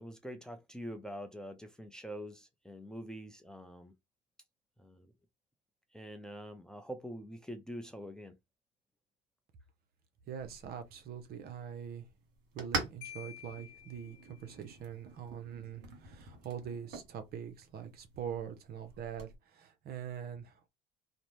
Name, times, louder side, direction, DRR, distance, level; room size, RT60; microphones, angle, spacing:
voice 1, 0.0-3.9 4.8-5.1 5.9-8.4, equal, 5° left, 0.5 m, -45 dB
voice 2, 10.3-12.1 12.5-20.7, right 8 dB, 50° right, 0.7 m, -43 dB
sound 1, 10.4-19.4, right 3 dB, 65° right, 1.2 m, -45 dB
Marimba xylophone, 13.0-14.7, left 11 dB, 70° left, 0.6 m, -51 dB
2.6 x 2.0 x 3.0 m
supercardioid pair, 85°, 20 cm